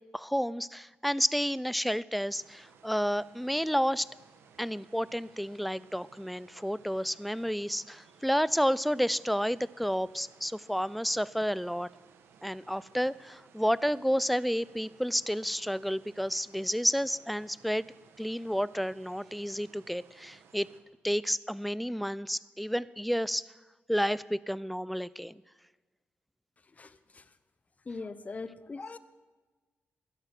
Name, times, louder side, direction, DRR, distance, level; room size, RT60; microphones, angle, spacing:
voice 1, 0.1-4.1 4.6-11.9 12.4-17.9 18.2-20.7 21.0-23.5 23.9-25.3, equal, ahead, 20 dB, 0.5 m, -30 dB
sound 1, 2.3-20.8, right 6 dB, 85° right, 1.4 m, -59 dB
voice 2, 26.6-27.4 27.8-29.0, left 4 dB, 35° left, 14 dB, 1.0 m, -41 dB
16.5 x 11.5 x 6.1 m, 1.3 s
cardioid pair, 65°, 4 cm